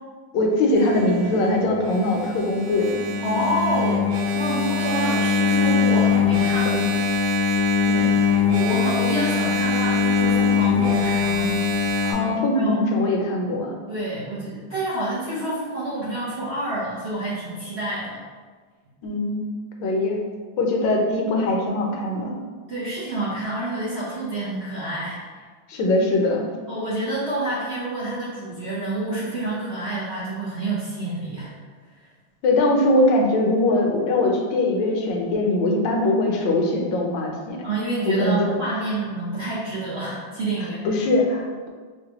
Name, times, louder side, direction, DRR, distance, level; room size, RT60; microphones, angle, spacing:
voice 1, 0.3-3.0 6.7-6.9 7.9-8.0 12.1-13.8 19.0-19.5 19.8-20.2 20.6-22.3 25.7-26.5 32.4-37.6 38.1-38.5 40.8-41.7, left 2 dB, 70° left, 0 dB, 1.3 m, -21 dB
Engine, 0.7-12.1, left 5 dB, 60° right, 1.5 m, -22 dB
voice 2, 3.2-6.8 7.8-8.1 8.5-11.6 12.5-12.9 13.9-18.2 22.7-25.3 26.7-31.5 31.9-32.1 37.6-41.0, right 1 dB, 80° right, -9 dB, 0.5 m, -28 dB
5.6 x 2.2 x 2.8 m, 1.5 s
omnidirectional pair, 2.2 m